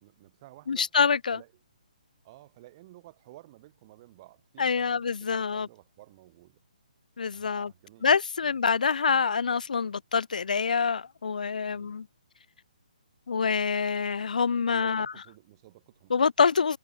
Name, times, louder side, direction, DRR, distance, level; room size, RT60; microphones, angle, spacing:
voice 1, 0.0-0.9 1.3-1.5 2.2-6.6 7.3-8.1 8.4-8.6 11.6-12.0 14.7-16.3, right 17 dB, 35° right, 2.4 m, -53 dB
voice 2, 0.7-1.4 4.6-5.7 7.2-7.7 8.0-12.1 13.3-15.1 16.1-16.8, left 5 dB, 75° left, 0.4 m, -26 dB
hypercardioid pair, 145°, 4 cm